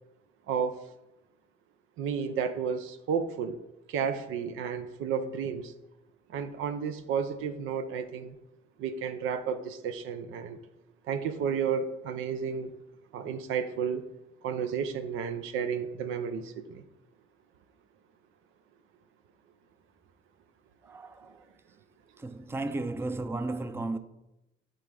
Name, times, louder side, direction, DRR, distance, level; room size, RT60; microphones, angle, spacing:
voice 1, 0.5-0.8 2.0-3.6 3.9-5.7 6.3-8.4 8.8-10.6 11.1-12.7 13.1-14.0 14.4-16.8, right 7 dB, 90° right, 0.6 m, -32 dB
voice 2, 20.8-21.5 22.2-24.0, right 2 dB, 10° right, 0.4 m, -34 dB
7.5 x 3.8 x 4.8 m
cardioid pair, 90°, 20 cm